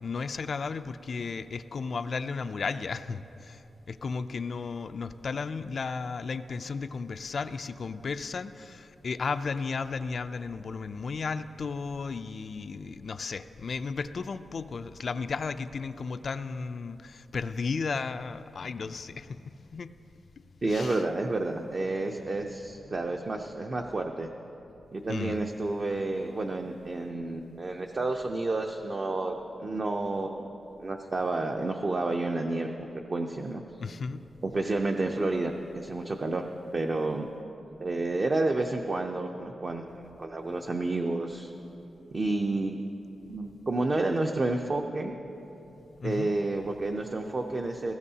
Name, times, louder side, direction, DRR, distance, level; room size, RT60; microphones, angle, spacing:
voice 1, 0.0-19.9 20.6-21.0 23.1-23.2 25.1-25.4 33.8-34.2 46.0-46.3, left 4 dB, 45° left, 11 dB, 0.3 m, -34 dB
voice 2, 20.6-24.3 24.9-30.5 30.8-32.7 33.1-33.6 34.4-37.3 37.8-41.5 42.1-42.8 43.3-45.2 46.0-47.9, right 2 dB, 30° right, 3 dB, 0.5 m, -30 dB
19.0 x 15.5 x 2.8 m, 2.9 s
wide cardioid pair, 170°, 0 cm